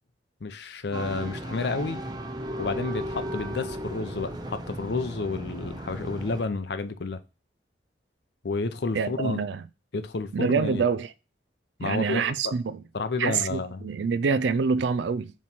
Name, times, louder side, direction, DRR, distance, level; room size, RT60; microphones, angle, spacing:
voice 1, 0.4-2.0 2.6-7.2 8.4-9.4 9.9-10.8 11.8-12.5 12.9-13.8, left 3 dB, 65° left, 0.6 m, -30 dB
sound 1, 0.9-6.4, right 1 dB, 25° right, 0.6 m, -35 dB
voice 2, 8.9-9.6 10.3-11.1 11.8-12.8 13.2-15.3, right 5 dB, 80° right, 0.4 m, -26 dB
7.2 x 3.2 x 4.3 m
head